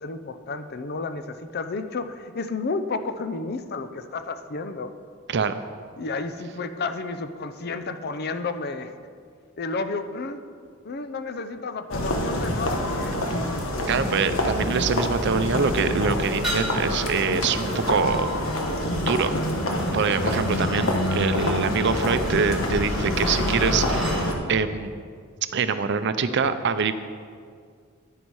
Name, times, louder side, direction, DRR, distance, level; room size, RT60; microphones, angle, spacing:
voice 1, 0.0-4.9 6.0-8.9 9.6-10.4 10.8-13.2, left 3 dB, 50° left, 10 dB, 0.6 m, -31 dB
sound 1, 11.9-24.3, left 1 dB, 90° left, 1.3 m, -26 dB
voice 2, 13.9-18.3 19.0-19.3 19.9-24.9 25.5-26.9, right 5 dB, 60° right, 11 dB, 0.6 m, -24 dB
sound 2, 16.4-24.2, equal, ahead, 2.7 m, -37 dB
10.0 x 9.7 x 4.7 m, 2.1 s
head